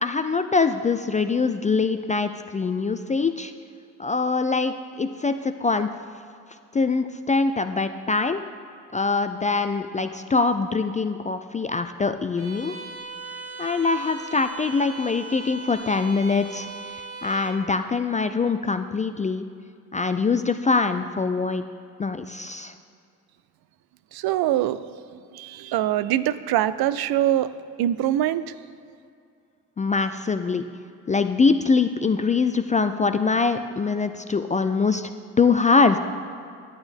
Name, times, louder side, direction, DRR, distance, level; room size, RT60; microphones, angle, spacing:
voice 1, 0.0-3.5 4.0-5.9 6.7-8.4 8.9-12.8 13.6-16.7 17.2-19.4 19.9-21.6 22.0-22.7 29.8-30.6 31.1-35.1 35.4-36.0, left 4 dB, 20° left, 9 dB, 0.3 m, -23 dB
Bowed string instrument, 12.4-17.7, right 3 dB, 75° right, 2.1 m, -39 dB
voice 2, 24.1-24.8 25.3-27.5 27.8-28.4, right 12 dB, 60° right, 15 dB, 0.5 m, -23 dB
11.0 x 8.7 x 3.5 m, 2.4 s
hypercardioid pair, 55°, 44 cm